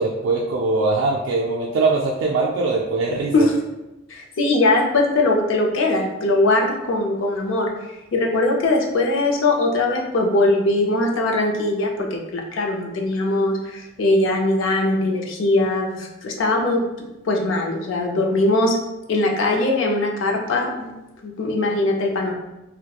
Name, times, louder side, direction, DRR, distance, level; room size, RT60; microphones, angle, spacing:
voice 1, 0.0-3.3, right 3 dB, 70° right, -3 dB, 0.3 m, -21 dB
voice 2, 4.1-7.7 8.1-16.8 17.2-18.8 19.1-20.9 21.2-22.3, left 2 dB, 80° left, 1 dB, 0.5 m, -20 dB
2.8 x 2.1 x 2.3 m, 0.98 s
head